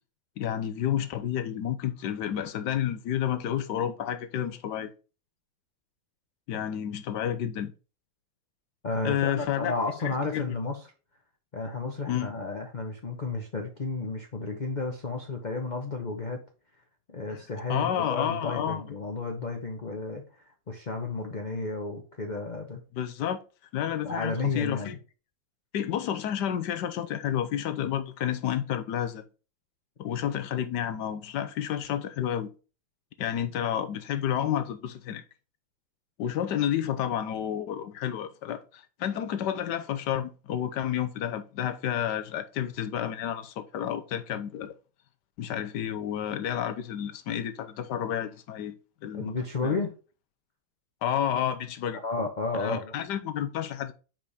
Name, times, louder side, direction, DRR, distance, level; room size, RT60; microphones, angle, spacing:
voice 1, 0.4-4.9 6.5-7.7 9.0-9.7 10.0-10.5 12.1-12.3 17.7-18.8 22.9-23.4 23.7-24.9 25.7-29.2 30.0-32.5 33.2-35.2 36.2-44.7 45.4-48.7 49.0-49.3 49.6-49.8 51.0-52.0 52.5-53.9, left 10 dB, 65° left, 1.2 m, -30 dB
voice 2, 8.8-10.8 11.5-16.4 17.1-20.2 20.7-22.8 24.0-25.0 49.1-49.9 52.0-52.9, left 3 dB, 45° left, 0.6 m, -32 dB
6.0 x 5.0 x 4.1 m
omnidirectional pair, 2.3 m